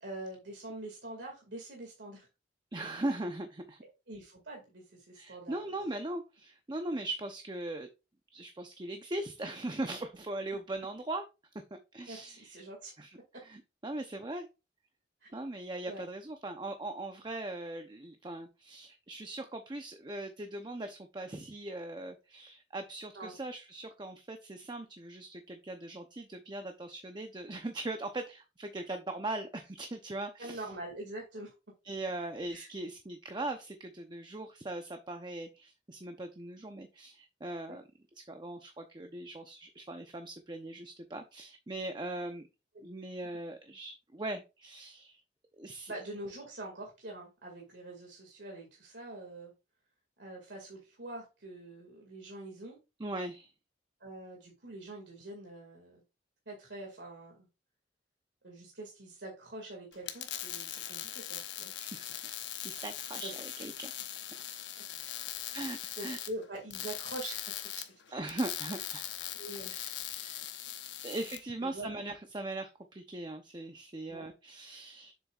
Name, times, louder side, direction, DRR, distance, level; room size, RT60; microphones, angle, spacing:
voice 1, 0.0-2.3 4.1-5.7 12.1-12.9 15.2-15.4 15.9-16.0 23.1-23.4 30.4-31.5 32.5-32.7 37.7-37.8 42.7-42.9 45.9-49.5 50.2-52.8 54.0-56.0 56.5-57.5 58.4-61.7 63.2-63.3 65.0-65.1 66.0-67.8 69.4-69.8 71.6-71.9 74.1-74.2, right 1 dB, 90° right, 0 dB, 2.2 m, -44 dB
voice 2, 2.7-3.8 5.2-7.9 8.3-11.2 11.9-12.5 13.0-13.1 13.4-14.5 15.3-30.6 31.8-37.8 38.2-42.5 42.8-45.2 45.6-45.9 53.0-53.5 61.8-62.4 62.6-63.9 65.5-66.2 68.1-69.3 69.7-70.4 71.0-75.1, right 2 dB, 25° right, 6 dB, 0.7 m, -40 dB
sound 1, 59.9-71.4, left 11 dB, 90° left, 0.9 m, -41 dB
7.2 x 7.1 x 2.4 m, 0.27 s
head